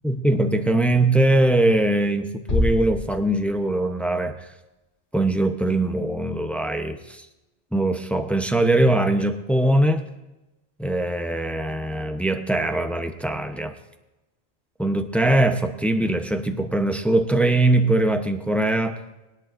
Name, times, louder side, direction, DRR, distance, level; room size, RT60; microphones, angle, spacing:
voice 1, 0.0-4.5 5.1-7.3 7.7-10.0 10.8-13.7 14.8-19.0, right 1 dB, ahead, 6 dB, 0.6 m, -21 dB
sound 1, 2.5-4.4, left 2 dB, 50° left, 1.7 m, -27 dB
21.0 x 10.5 x 2.5 m, 1.0 s
omnidirectional pair, 1.1 m